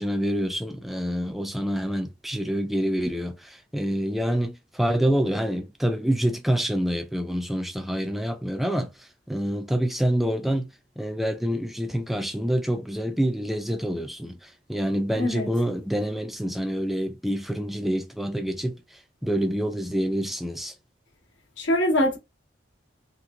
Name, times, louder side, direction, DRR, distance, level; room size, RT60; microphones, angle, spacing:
voice 1, 0.0-20.7, equal, ahead, 0.3 m, -27 dB
voice 2, 15.2-15.5 21.6-22.2, left 1 dB, 70° left, 1.1 m, -23 dB
2.9 x 2.9 x 2.3 m
head